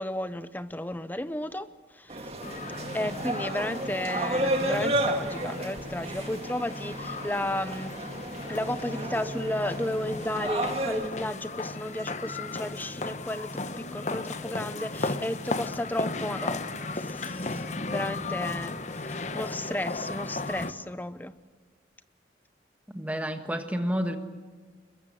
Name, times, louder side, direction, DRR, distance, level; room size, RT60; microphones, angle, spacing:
voice 1, 0.0-1.7 1.9-2.3 2.9-8.0 8.5-16.6 16.9-17.6 17.9-21.3, left 1 dB, 10° left, 13 dB, 0.7 m, -33 dB
sound 1, 2.1-11.1, right 1 dB, 35° right, 1.9 m, -32 dB
sound 2, 2.4-20.7, left 3 dB, 40° left, 1.0 m, -35 dB
voice 2, 22.9-24.2, equal, 10° right, 6 dB, 1.5 m, -30 dB
23.5 x 22.0 x 7.9 m, 1.4 s
head